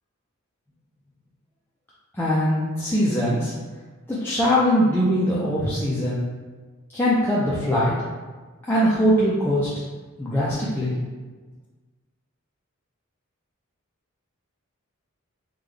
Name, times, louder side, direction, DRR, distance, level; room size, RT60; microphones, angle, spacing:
voice 1, 2.1-3.5 4.1-6.2 6.9-7.9 8.7-9.7 10.2-10.9, equal, 10° left, -8 dB, 0.4 m, -21 dB
3.7 x 2.1 x 3.2 m, 1.4 s
head